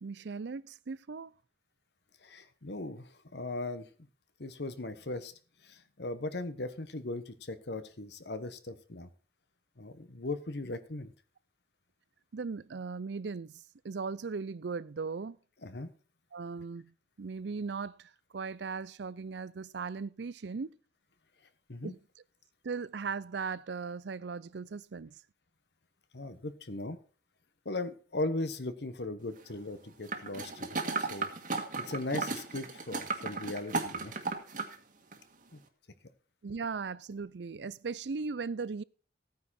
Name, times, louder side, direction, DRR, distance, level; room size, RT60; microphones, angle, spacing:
voice 1, 0.0-1.3 12.3-15.4 16.3-20.7 21.8-22.0 22.6-25.1 36.4-38.8, right 4 dB, 70° right, 0.5 m, -38 dB
voice 2, 2.2-3.9 4.4-5.3 5.6-9.1 9.8-11.1 15.6-15.9 21.7-21.9 26.1-27.0 27.6-34.1 35.5-35.6, left 2 dB, 65° left, 1.2 m, -38 dB
sound 1, 30.1-34.7 35.1-35.2, right 3 dB, 50° right, 1.7 m, -35 dB
15.0 x 9.4 x 4.3 m
head